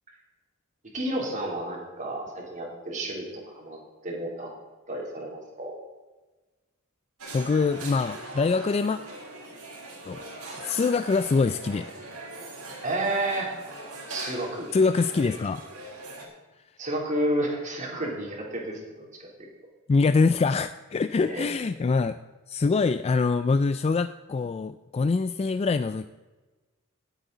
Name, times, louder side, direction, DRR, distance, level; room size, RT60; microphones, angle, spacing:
voice 1, 0.9-3.8 4.0-4.5 4.9-5.8 12.8-13.5 14.1-14.7 16.8-18.8 19.2-19.5 21.2-21.5, right 1 dB, 35° right, -2 dB, 3.1 m, -31 dB
sound 1, 7.2-16.2, right 2 dB, 85° right, 3.5 m, -41 dB
voice 2, 7.3-9.0 10.1-10.2 10.6-11.9 14.7-15.6 19.9-22.2 22.5-26.1, left 4 dB, 30° left, 11 dB, 0.3 m, -24 dB
17.5 x 8.1 x 3.9 m, 1.2 s
head